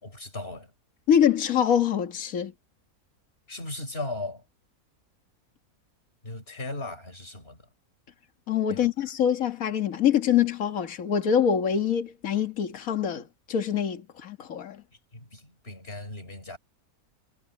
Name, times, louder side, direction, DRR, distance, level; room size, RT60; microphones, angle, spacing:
voice 1, 0.0-0.7 3.5-4.4 6.2-7.7 8.7-8.9 15.1-16.6, left 2 dB, 40° left, 5.4 m, -37 dB
voice 2, 1.1-2.5 8.5-14.8, left 8 dB, 65° left, 1.9 m, -25 dB
omnidirectional pair, 1.6 m